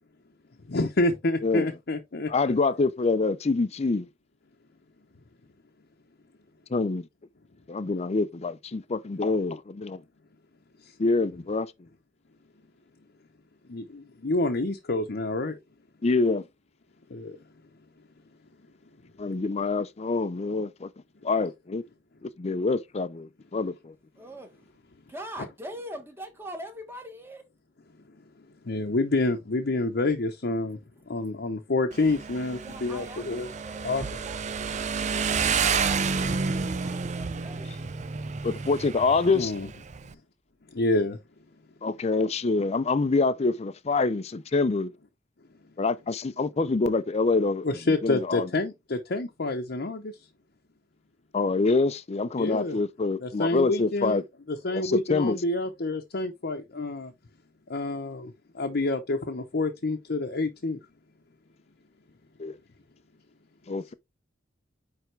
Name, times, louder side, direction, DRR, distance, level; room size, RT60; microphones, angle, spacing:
voice 1, 0.7-2.5 13.7-15.5 17.1-17.4 28.7-30.8 31.1-33.5 33.8-34.0 39.3-39.7 40.7-41.2 47.6-50.1 52.4-52.8 53.2-54.2 54.5-57.1 57.7-60.8, left 2 dB, 60° left, 0.8 m, -28 dB
voice 2, 2.3-4.1 6.7-7.1 7.7-10.0 11.0-11.7 16.0-16.4 19.2-20.9 21.2-21.8 22.2-23.9 38.4-39.5 41.8-44.9 45.8-48.5 51.3-54.2 54.7-55.4 62.4-62.6 63.7-63.9, left 3 dB, 35° left, 0.5 m, -26 dB
voice 3, 24.2-24.7 25.1-27.5 32.6-37.7, right 1 dB, 15° right, 1.3 m, -43 dB
Motorcycle, 31.9-40.1, right 5 dB, 40° right, 0.5 m, -30 dB
9.1 x 3.5 x 3.2 m
head